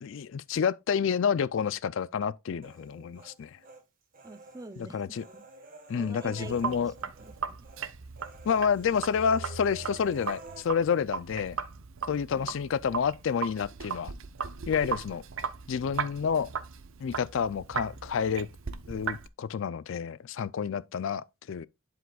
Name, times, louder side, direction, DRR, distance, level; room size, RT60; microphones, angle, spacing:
voice 1, 0.0-3.6 4.8-5.2 5.9-6.9 8.5-11.6 12.1-14.1 14.7-15.2 15.7-16.5 17.0-18.5 18.9-21.7, left 7 dB, 60° left, 0.3 m, -29 dB
Human voice, 2.6-3.8 4.1-7.4 7.6-7.8 8.2-10.6, right 1 dB, 40° right, 1.4 m, -49 dB
voice 2, 4.2-5.0 5.3-5.5 5.9-7.6 12.3-12.6, right 2 dB, 15° right, 0.4 m, -46 dB
Sink (filling or washing), 6.4-19.3, right 6 dB, 60° right, 0.6 m, -38 dB
11.0 x 5.0 x 2.3 m
head